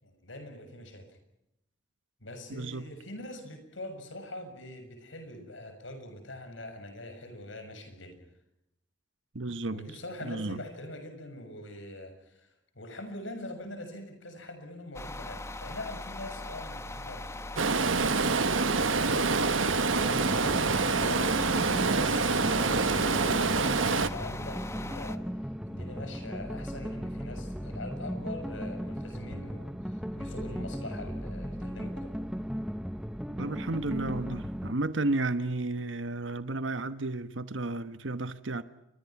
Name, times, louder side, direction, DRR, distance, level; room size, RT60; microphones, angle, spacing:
voice 1, 0.0-1.2 2.2-8.2 9.7-12.5 12.8-21.3 21.9-25.2 25.7-32.2, left 1 dB, 75° left, 6.9 m, -43 dB
voice 2, 2.5-2.9 9.3-10.6 33.4-38.6, right 2 dB, 70° right, 1.2 m, -33 dB
sound 1, 14.9-25.2, left 2 dB, 15° left, 1.1 m, -40 dB
Stream, 17.6-24.1, right 4 dB, 85° right, 1.4 m, -26 dB
sound 2, 20.1-34.7, equal, 5° right, 0.8 m, -37 dB
29.0 x 24.0 x 6.0 m
head